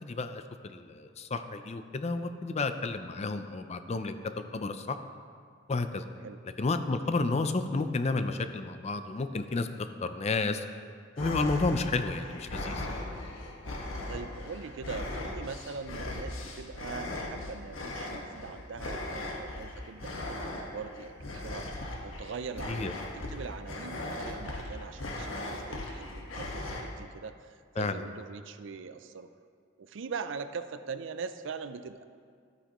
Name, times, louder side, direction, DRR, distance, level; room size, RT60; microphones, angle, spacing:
voice 1, 0.0-4.2 4.5-5.0 5.7-6.1 6.6-9.7 10.0-10.6 11.2-12.9 22.7-22.9 27.8-28.0, left 3 dB, 35° left, 9 dB, 0.5 m, -31 dB
sound 1, 11.2-26.8, left 1 dB, 80° left, 1.4 m, -38 dB
voice 2, 14.1-21.8 22.0-29.3 29.8-32.0, right 5 dB, 65° right, 11 dB, 0.4 m, -42 dB
13.0 x 9.7 x 3.0 m, 2.1 s
head